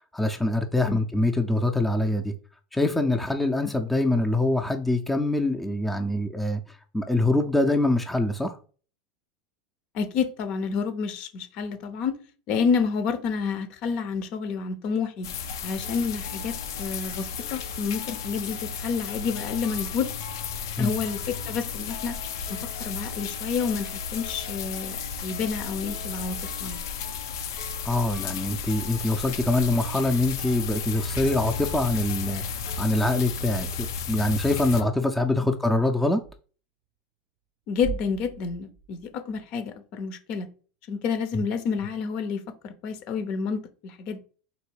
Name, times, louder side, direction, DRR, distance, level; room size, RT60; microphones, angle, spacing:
voice 1, 0.1-2.3 2.7-6.6 6.9-8.6 20.8-20.9 27.8-32.4 32.8-36.2 41.3-41.4, left 2 dB, 5° left, 0.5 m, -24 dB
voice 2, 9.9-12.2 12.5-15.3 15.6-20.1 20.8-22.2 22.5-26.8 37.7-40.5 40.9-44.2, left 5 dB, 55° left, 0.7 m, -29 dB
sound 1, 15.2-34.8, left 6 dB, 85° left, 0.6 m, -33 dB
sound 2, 15.8-33.1, left 6 dB, 70° left, 1.0 m, -47 dB
sound 3, 36.2-36.4 37.7-39.6, right 7 dB, 65° right, 0.4 m, -41 dB
4.1 x 2.6 x 4.6 m
supercardioid pair, 120°, 2 cm